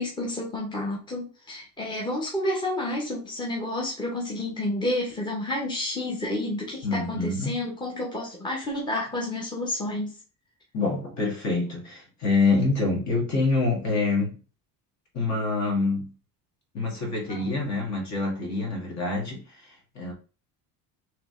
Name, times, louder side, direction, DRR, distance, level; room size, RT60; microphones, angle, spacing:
voice 1, 0.0-10.1 17.2-17.4, left 1 dB, 10° left, 1.0 m, -30 dB
voice 2, 6.8-7.6 10.7-14.4 15.1-16.1 16.7-20.1, left 3 dB, 40° left, 1.8 m, -26 dB
3.7 x 3.1 x 3.7 m
cardioid pair, 140°, 40 cm